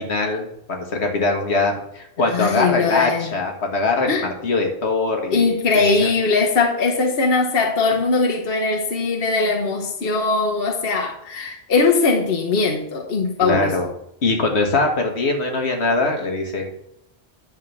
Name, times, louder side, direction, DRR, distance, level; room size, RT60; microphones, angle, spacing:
voice 1, 0.0-5.8 13.4-13.9 14.2-16.7, left 3 dB, 80° left, 3 dB, 1.7 m, -22 dB
voice 2, 2.3-3.3 4.1-4.3 5.3-13.7, left 4 dB, 60° left, 1 dB, 1.3 m, -20 dB
9.9 x 3.8 x 7.0 m, 0.75 s
omnidirectional pair, 1.1 m